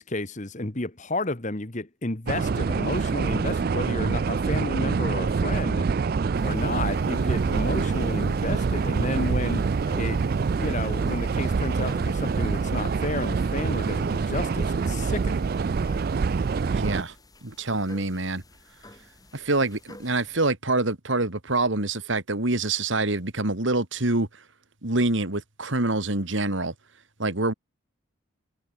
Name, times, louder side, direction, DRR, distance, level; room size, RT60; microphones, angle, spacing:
voice 1, 0.0-5.9 6.4-9.7 9.9-10.2 10.6-15.5, left 2 dB, 35° left, 1.5 m, -31 dB
sound 1, 2.3-17.0, right 5 dB, 45° right, 0.3 m, -25 dB
sound 2, 6.3-20.5, left 2 dB, 20° left, 6.9 m, -51 dB
voice 2, 16.7-17.1 17.4-18.4 19.3-24.3 24.8-26.7 27.2-27.5, right 2 dB, 65° right, 2.3 m, -26 dB
head